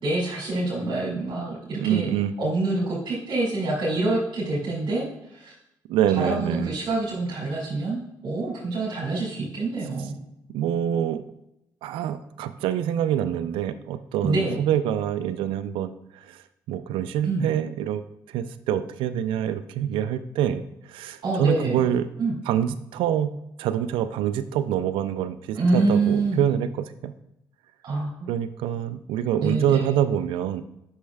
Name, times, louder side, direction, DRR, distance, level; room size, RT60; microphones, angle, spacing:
voice 1, 0.0-2.1 2.4-5.5 6.1-10.2 14.2-14.6 17.2-17.5 21.2-21.9 22.2-22.3 25.5-26.4 27.8-28.1 29.4-29.9, right 2 dB, 65° right, -7 dB, 2.2 m, -26 dB
voice 2, 1.8-2.4 5.9-6.7 10.5-11.3 11.8-16.4 16.7-18.0 18.3-22.1 22.5-27.1 28.3-30.6, right 10 dB, 90° right, 13 dB, 0.4 m, -26 dB
8.2 x 6.4 x 2.3 m, 0.85 s
supercardioid pair, 65°, 9 cm